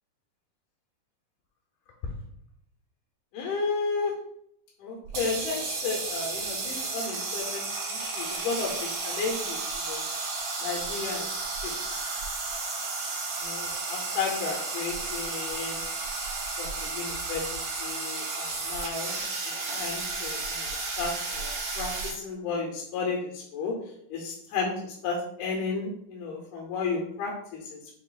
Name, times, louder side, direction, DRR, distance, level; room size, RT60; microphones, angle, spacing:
voice 1, 3.3-4.1 4.8-10.0 10.6-12.0 13.4-15.8 16.6-17.4 17.8-19.2 19.7-23.8 24.1-27.8, left 4 dB, 75° left, -1 dB, 2.2 m, -33 dB
sound 1, 5.0-22.1, right 3 dB, 65° right, 1.3 m, -33 dB
6.0 x 3.7 x 2.4 m, 0.71 s
omnidirectional pair, 3.8 m